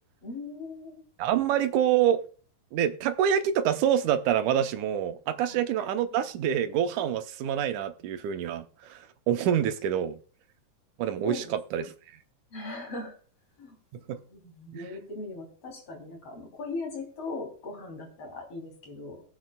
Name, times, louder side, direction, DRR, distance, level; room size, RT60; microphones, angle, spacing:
voice 1, 0.2-1.0 5.5-5.9 11.2-11.8 12.5-13.2 13.6-13.8 14.3-19.2, left 3 dB, 45° left, 4.0 m, -39 dB
voice 2, 1.2-2.2 2.7-10.2 11.0-11.9 14.1-14.2 14.7-14.8, right 9 dB, 75° right, 2.1 m, -26 dB
22.0 x 7.5 x 2.3 m
omnidirectional pair, 4.0 m